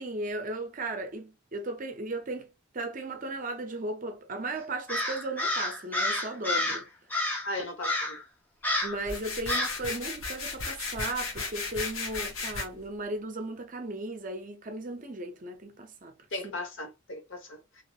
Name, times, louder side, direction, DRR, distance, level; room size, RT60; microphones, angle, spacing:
voice 1, 0.0-2.5 2.7-6.9 8.8-16.1, right 2 dB, 40° right, 0.6 m, -36 dB
Crow, 4.9-6.8 7.1-7.5 7.8-8.2 8.6-9.0 9.5-9.8, left 2 dB, 10° left, 0.7 m, -29 dB
voice 2, 7.4-8.2 16.3-17.8, left 1 dB, 70° left, 1.1 m, -37 dB
sound 1, 9.0-12.6, left 4 dB, 85° left, 1.0 m, -35 dB
2.9 x 2.9 x 2.3 m
head